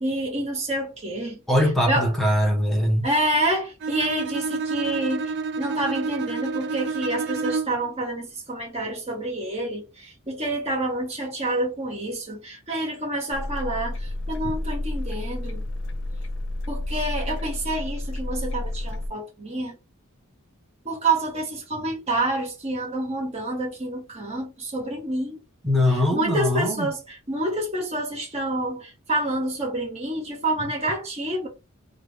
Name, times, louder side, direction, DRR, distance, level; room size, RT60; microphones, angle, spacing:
voice 1, 0.0-1.4 1.9-2.1 3.0-15.6 16.7-19.8 20.8-25.4 25.9-31.5, right 1 dB, 30° right, 1.3 m, -28 dB
voice 2, 1.5-3.1 25.6-26.9, left 1 dB, ahead, 0.9 m, -21 dB
Bowed string instrument, 3.8-7.9, right 4 dB, 50° right, 0.4 m, -29 dB
sound 1, 13.3-19.1, left 1 dB, 55° left, 0.6 m, -30 dB
3.4 x 2.4 x 3.3 m
head